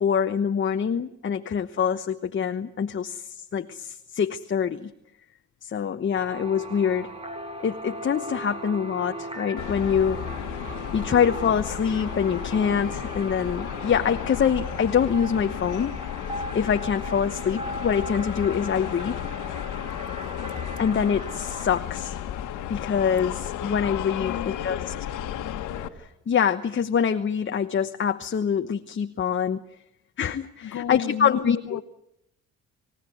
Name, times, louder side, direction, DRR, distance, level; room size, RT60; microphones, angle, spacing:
voice 1, 0.0-4.9 5.6-7.1 7.6-15.9 16.5-19.2 20.8-22.2 22.7-24.8 26.0-29.6 30.2-31.8, left 7 dB, 40° left, 1.1 m, -25 dB
sound 1, 6.1-21.8, right 1 dB, 20° right, 3.1 m, -39 dB
sound 2, 9.6-25.9, left 10 dB, 85° left, 1.8 m, -33 dB
voice 2, 24.2-24.9 30.6-31.8, left 10 dB, 65° left, 1.4 m, -34 dB
28.0 x 16.5 x 9.3 m
cardioid pair, 90°, 30 cm